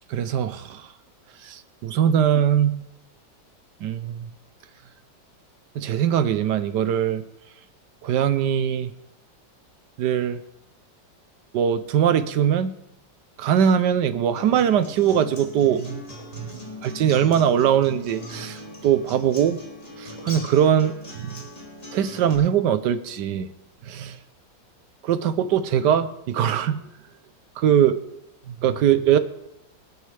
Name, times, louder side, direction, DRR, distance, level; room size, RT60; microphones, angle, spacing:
voice 1, 0.1-0.9 1.4-2.8 3.8-4.3 5.7-7.2 8.0-8.9 10.0-10.4 11.5-12.7 13.4-16.0 16.3-16.5 16.8-19.6 20.0-21.4 21.9-23.5 23.8-24.2 25.0-26.9 27.6-28.0 28.5-29.2, right 9 dB, 70° right, 12 dB, 1.3 m, -21 dB
Acoustic guitar, 14.4-22.3, left 1 dB, 20° left, 2.9 m, -40 dB
26.0 x 8.6 x 3.4 m, 0.85 s
omnidirectional pair, 2.0 m